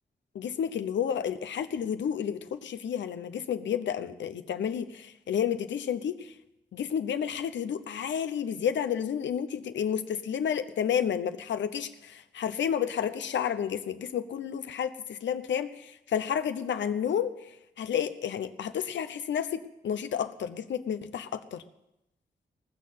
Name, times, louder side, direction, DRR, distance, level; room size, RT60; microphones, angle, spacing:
voice 1, 0.3-6.3 6.7-17.3 17.8-21.6, left 8 dB, 90° left, 11 dB, 0.9 m, -31 dB
19.5 x 6.7 x 9.4 m, 0.89 s
cardioid pair, 65°, 18 cm